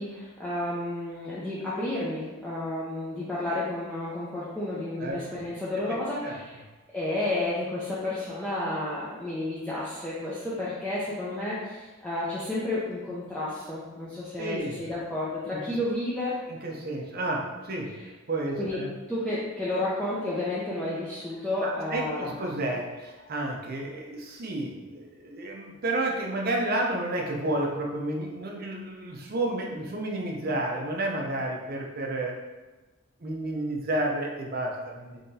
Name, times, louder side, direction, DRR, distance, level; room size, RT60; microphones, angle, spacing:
voice 1, 0.0-6.6 6.9-16.4 18.0-18.1 18.6-18.8 19.1-22.3, left 1 dB, 5° left, -9 dB, 0.4 m, -31 dB
voice 2, 14.4-14.8 15.7-15.8 16.6-17.9 18.3-18.9 21.6-32.4 33.2-35.2, right 1 dB, 45° right, 0 dB, 0.6 m, -31 dB
3.8 x 2.9 x 2.7 m, 1.2 s
head